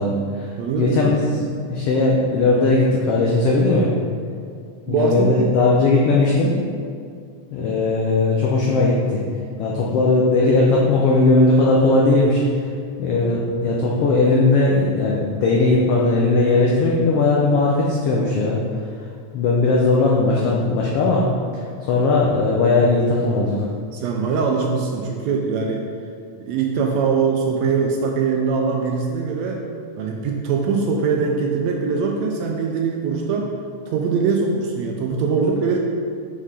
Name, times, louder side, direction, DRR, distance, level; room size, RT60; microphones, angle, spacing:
voice 1, 0.0-3.9 4.9-6.6 7.5-9.2 9.6-12.7 13.0-18.6 18.9-19.0 19.3-21.3 21.5-23.7, left 3 dB, 80° left, -3 dB, 1.3 m, -18 dB
voice 2, 0.6-1.2 4.9-5.5 23.9-25.9 26.3-29.6 30.0-33.5 33.9-35.8, right 5 dB, 80° right, 0 dB, 1.6 m, -22 dB
6.6 x 5.5 x 3.6 m, 2.2 s
omnidirectional pair, 3.4 m